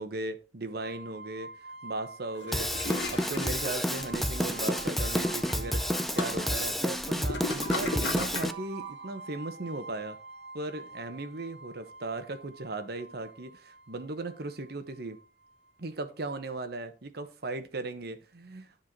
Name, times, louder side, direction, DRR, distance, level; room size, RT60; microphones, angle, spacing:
voice 1, 0.0-1.5 1.8-2.7 3.1-5.8 6.1-10.2 10.5-15.2 15.8-18.8, right 2 dB, 65° right, 9 dB, 1.0 m, -37 dB
sound 1, 0.8-15.7, right 4 dB, 90° right, 1.3 m, -46 dB
Toilet flush, 2.4-8.6, left 2 dB, 85° left, 1.7 m, -38 dB
Drum kit / Drum, 2.5-8.5, equal, ahead, 0.5 m, -30 dB
10.0 x 4.6 x 4.6 m, 0.33 s
head